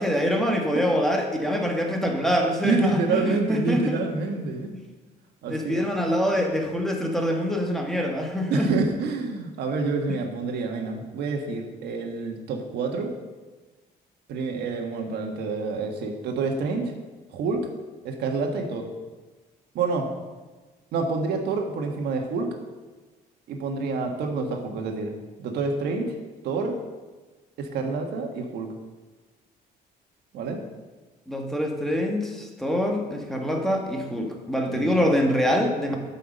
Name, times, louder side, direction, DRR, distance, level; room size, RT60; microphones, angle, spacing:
voice 1, 0.0-4.0 4.7-4.8 5.5-8.7 31.3-36.0, equal, ahead, 1 dB, 1.4 m, -25 dB
voice 2, 2.6-4.7 5.4-5.8 8.5-13.1 14.3-16.9 17.3-17.6 18.0-18.9 19.7-20.1 20.9-22.6 23.5-25.1 25.4-26.1 26.4-26.8 27.6-28.7 30.3-30.6 34.7-34.9 35.9-36.0, right 4 dB, 75° right, 3 dB, 1.5 m, -27 dB
9.4 x 5.7 x 6.6 m, 1.3 s
cardioid pair, 110°, 17 cm